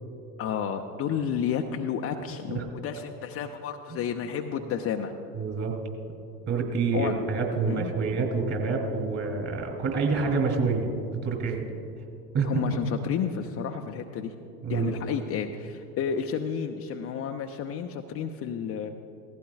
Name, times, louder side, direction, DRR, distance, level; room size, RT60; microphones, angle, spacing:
voice 1, 0.4-5.1 6.9-7.2 7.7-8.0 12.4-14.3 14.7-18.9, left 7 dB, 30° left, 4 dB, 0.6 m, -31 dB
voice 2, 5.3-5.8 6.5-10.9 11.2-11.6 12.3-12.5 14.6-14.9, right 4 dB, 35° right, 1 dB, 3.1 m, -27 dB
18.0 x 15.0 x 2.4 m, 2.7 s
figure-of-eight pair, 80°, 46 cm